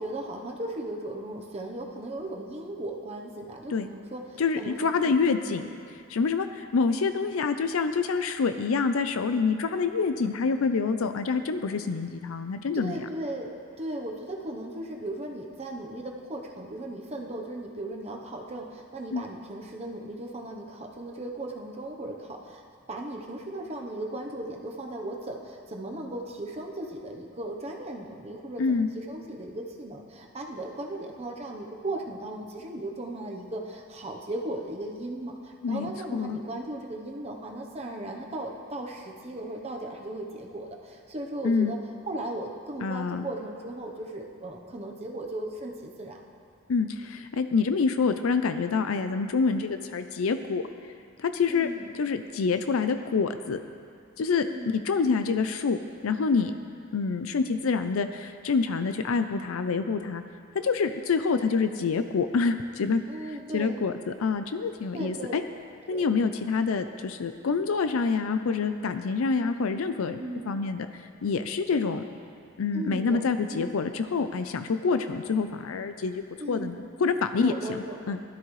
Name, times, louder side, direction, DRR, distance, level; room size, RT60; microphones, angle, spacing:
voice 1, 0.0-5.7 12.7-41.8 42.1-46.2 51.5-51.9 54.4-54.8 63.1-63.8 64.9-65.4 65.9-66.1 70.1-70.5 72.7-73.8 76.4-76.8 77.4-78.0, right 1 dB, 30° right, 0 dB, 0.9 m, -37 dB
voice 2, 4.4-5.7 6.1-13.0 19.1-19.2 28.6-28.9 35.6-36.4 41.4-41.8 42.8-43.2 46.7-50.6 51.2-51.7 52.0-53.6 54.2-54.5 54.7-55.8 56.0-56.5 56.9-60.2 60.5-65.4 65.9-70.2 70.5-70.9 71.2-72.0 72.6-78.2, left 4 dB, 90° left, 9 dB, 0.5 m, -27 dB
17.0 x 12.5 x 3.2 m, 2.4 s
head